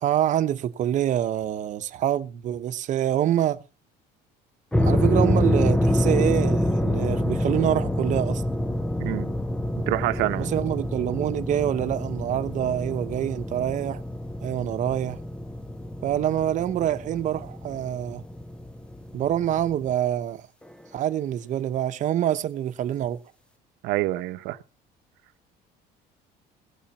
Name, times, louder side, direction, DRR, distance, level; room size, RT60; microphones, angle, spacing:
voice 1, 0.0-3.7 4.8-8.4 10.4-14.0 14.4-15.2 16.0-18.2 19.1-20.4 20.9-23.2, right 11 dB, 45° right, 1.0 m, -26 dB
sound 1, 4.7-19.9, left 1 dB, 5° left, 0.7 m, -27 dB
voice 2, 9.0-9.3 9.9-10.5 23.8-24.6, right 17 dB, 80° right, 0.9 m, -26 dB
16.5 x 7.3 x 6.1 m
cardioid pair, 155°, 17 cm